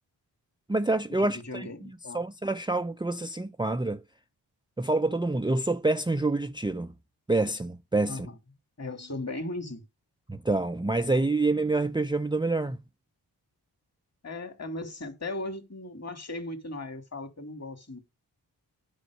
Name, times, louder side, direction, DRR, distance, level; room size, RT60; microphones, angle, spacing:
voice 1, 0.7-1.7 2.1-4.0 4.8-6.9 7.3-8.3 10.3-12.8, right 2 dB, 10° right, 0.6 m, -27 dB
voice 2, 1.2-2.2 8.1-8.3 8.8-9.8 14.2-18.0, left 2 dB, 35° left, 2.9 m, -37 dB
10.0 x 4.5 x 6.5 m
cardioid pair, 40°, 42 cm